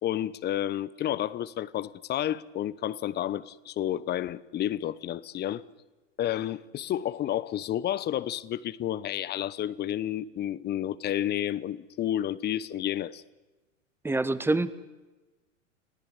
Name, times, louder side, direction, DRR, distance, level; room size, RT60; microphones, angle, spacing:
voice 1, 0.0-5.6 6.2-13.2, left 12 dB, 25° left, 1.0 m, -31 dB
voice 2, 14.0-14.7, right 2 dB, 5° right, 1.3 m, -26 dB
29.5 x 18.5 x 9.8 m
hypercardioid pair, 100°, 39 cm